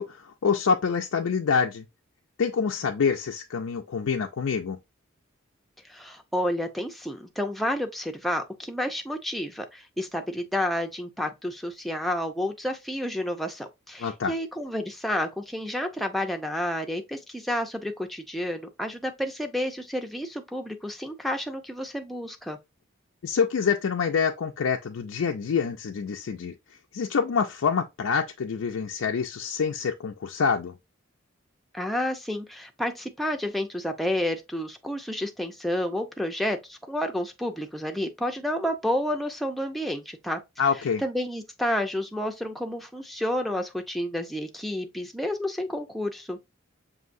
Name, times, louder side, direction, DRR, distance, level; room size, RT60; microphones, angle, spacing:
voice 1, 0.0-1.8 2.4-4.8 14.0-14.3 23.2-26.5 26.9-30.7 40.6-41.0, left 6 dB, 85° left, 0.4 m, -26 dB
voice 2, 5.9-22.6 31.7-40.4 41.0-46.4, left 1 dB, ahead, 0.5 m, -30 dB
6.3 x 2.6 x 2.6 m
head